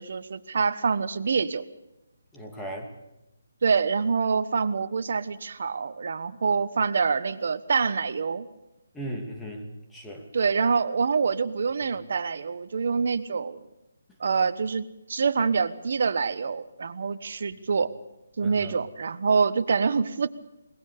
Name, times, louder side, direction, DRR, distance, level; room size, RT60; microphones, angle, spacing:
voice 1, 0.0-1.7 3.6-8.5 10.3-13.6 14.2-17.9 18.4-20.3, right 5 dB, 60° right, 11 dB, 1.2 m, -26 dB
voice 2, 2.3-2.9 8.9-9.7 9.9-10.3 18.4-18.8, right 1 dB, 5° left, 0 dB, 2.7 m, -37 dB
21.5 x 19.5 x 6.8 m, 0.92 s
figure-of-eight pair, 155°, 0 cm